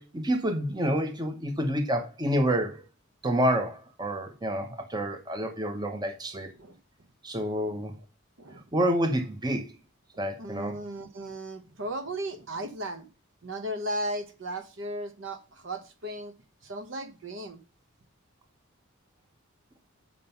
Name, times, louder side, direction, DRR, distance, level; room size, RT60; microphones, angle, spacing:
voice 1, 0.0-2.8 3.2-6.5 7.2-7.9 8.7-9.7 10.2-10.8, equal, 20° right, 0.9 m, -28 dB
voice 2, 10.4-13.1 13.4-16.3 16.6-17.6, right 1 dB, 60° right, 1.0 m, -36 dB
7.4 x 5.3 x 5.7 m
head